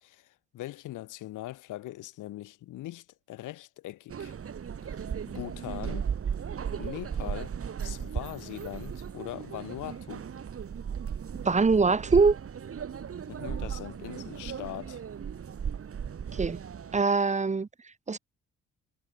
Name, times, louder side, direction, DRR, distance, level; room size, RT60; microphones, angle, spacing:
voice 1, 0.0-4.3 4.8-6.1 6.7-7.6 7.8-10.3 13.3-15.0, left 15 dB, 85° left, 2.5 m, -41 dB
sound 1, 4.1-17.0, right 7 dB, 50° right, 3.8 m, -36 dB
voice 2, 11.4-12.4 16.3-16.6 16.9-17.7 18.1-18.2, right 4 dB, 25° right, 1.0 m, -23 dB
cardioid pair, 90°, 30 cm